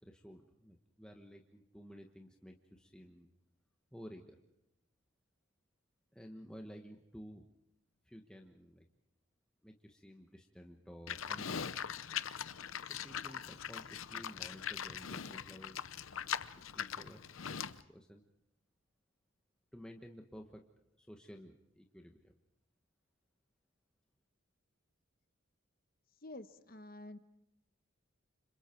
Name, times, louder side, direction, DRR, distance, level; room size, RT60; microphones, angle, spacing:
voice 1, 0.0-3.3 3.9-4.4 6.1-7.5 8.0-8.9 9.6-11.9 12.9-15.9 16.7-18.2 19.7-20.7 21.0-22.3, equal, 5° left, 2 dB, 1.3 m, -53 dB
Livestock farm animals working animals, 11.1-17.8, left 8 dB, 80° left, 0.8 m, -41 dB
voice 2, 26.2-27.2, left 2 dB, 45° left, 10 dB, 1.1 m, -49 dB
30.0 x 26.5 x 4.6 m, 0.85 s
head